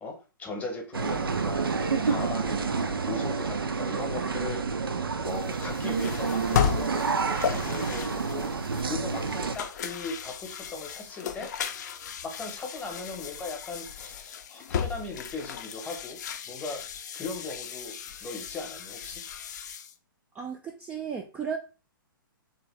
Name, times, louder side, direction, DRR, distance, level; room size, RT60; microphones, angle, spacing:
voice 1, 0.0-4.7 5.2-8.5 8.8-11.5 12.2-16.2 16.5-16.8 17.1-18.0 18.2-19.2, left 3 dB, 10° left, 3 dB, 0.9 m, -38 dB
sound 1, 0.9-9.6, right 5 dB, 80° right, 0.5 m, -29 dB
sound 2, 5.2-19.9, left 8 dB, 50° left, 0.5 m, -35 dB
voice 2, 20.3-21.6, right 6 dB, 10° right, 3 dB, 0.3 m, -34 dB
3.3 x 2.9 x 3.1 m, 0.34 s
figure-of-eight pair, 120°, 12 cm